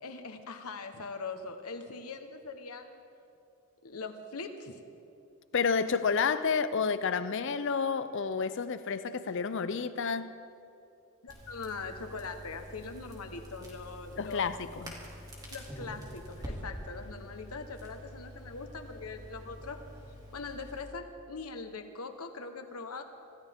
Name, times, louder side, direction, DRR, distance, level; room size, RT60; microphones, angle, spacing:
voice 1, 0.0-3.0 3.8-4.8 11.2-14.5 15.5-19.8 20.3-23.0, left 4 dB, 80° left, 1.2 m, -41 dB
voice 2, 5.5-10.3 14.2-14.9, left 5 dB, 55° left, 0.5 m, -30 dB
Crackle, 11.3-20.9, equal, 20° right, 2.6 m, -46 dB
25.5 x 13.5 x 3.6 m
head